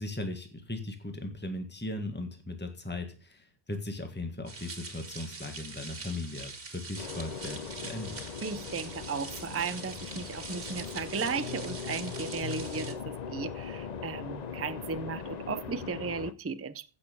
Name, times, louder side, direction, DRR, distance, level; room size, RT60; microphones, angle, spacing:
voice 1, 0.0-8.3, left 2 dB, 10° left, 5 dB, 1.8 m, -38 dB
sound 1, 4.5-12.9, right 3 dB, 60° right, 2.0 m, -43 dB
sound 2, 7.0-16.3, left 6 dB, 45° left, 0.7 m, -40 dB
voice 2, 8.4-16.9, right 5 dB, 20° right, 13 dB, 0.4 m, -35 dB
15.5 x 6.8 x 5.3 m, 0.37 s
omnidirectional pair, 1.1 m